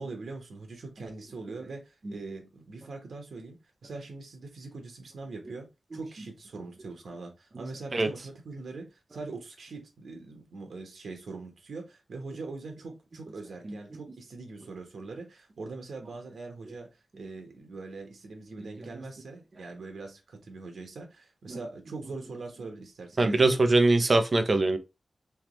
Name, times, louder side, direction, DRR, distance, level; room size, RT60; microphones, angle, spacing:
voice 1, 0.0-16.9 17.1-23.6, right 3 dB, 85° right, 1.0 m, -42 dB
voice 2, 23.2-24.8, right 2 dB, 40° right, 0.6 m, -22 dB
3.5 x 3.0 x 3.0 m
wide cardioid pair, 140°, 0 cm